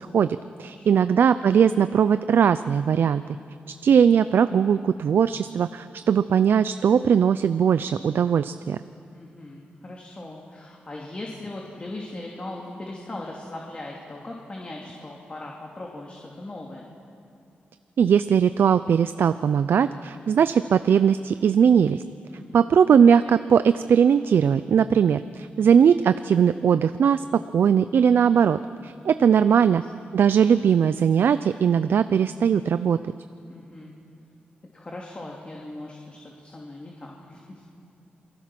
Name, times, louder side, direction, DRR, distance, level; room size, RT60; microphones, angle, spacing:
voice 1, 0.1-3.2 3.8-8.8 18.0-22.0 22.5-29.8 30.1-33.0, right 7 dB, 75° right, 12 dB, 0.5 m, -20 dB
voice 2, 0.7-1.2 9.1-16.9 22.3-22.7 29.6-30.1 33.5-33.9 34.7-37.8, left 2 dB, 30° left, -2 dB, 2.8 m, -39 dB
28.0 x 21.5 x 6.0 m, 2.5 s
cardioid pair, 90°, 4 cm